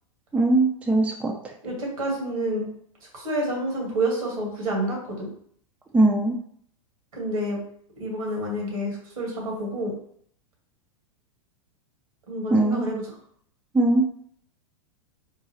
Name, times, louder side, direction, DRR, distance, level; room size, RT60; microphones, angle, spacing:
voice 1, 0.3-1.3 5.9-6.3 12.5-12.9 13.7-14.1, right 2 dB, 5° right, 1 dB, 0.4 m, -20 dB
voice 2, 1.6-2.7 3.1-5.3 7.1-7.6 8.0-9.9 12.3-13.0, right 1 dB, 80° right, -1 dB, 1.5 m, -28 dB
3.8 x 2.2 x 2.8 m, 0.63 s
hypercardioid pair, 105°, 18 cm